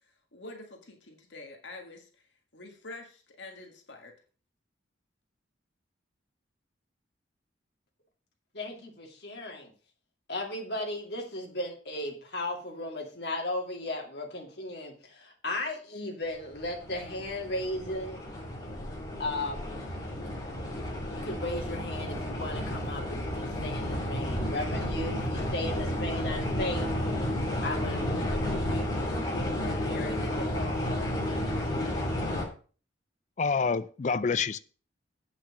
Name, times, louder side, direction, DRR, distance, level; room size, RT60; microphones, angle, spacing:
voice 1, 0.3-2.1 2.5-4.1, left 2 dB, 75° left, 1.8 m, -46 dB
voice 2, 8.5-9.7 10.3-18.2 19.2-19.6 21.1-26.9 27.6-30.8, left 1 dB, 55° left, 2.6 m, -36 dB
sound 1, 16.5-32.4, left 1 dB, 20° left, 3.0 m, -32 dB
voice 3, 33.4-34.6, left 5 dB, 40° left, 0.4 m, -27 dB
8.4 x 6.1 x 6.1 m
head